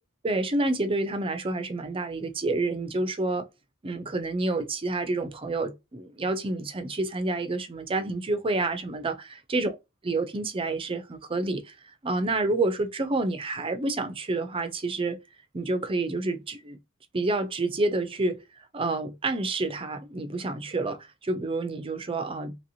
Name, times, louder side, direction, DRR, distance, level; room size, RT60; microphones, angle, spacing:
voice 1, 0.2-3.4 3.8-9.1 9.5-9.7 10.0-11.7 12.0-15.2 15.5-16.8 17.1-18.4 18.7-22.6, right 2 dB, 25° right, 0.4 m, -28 dB
2.9 x 2.8 x 2.7 m
head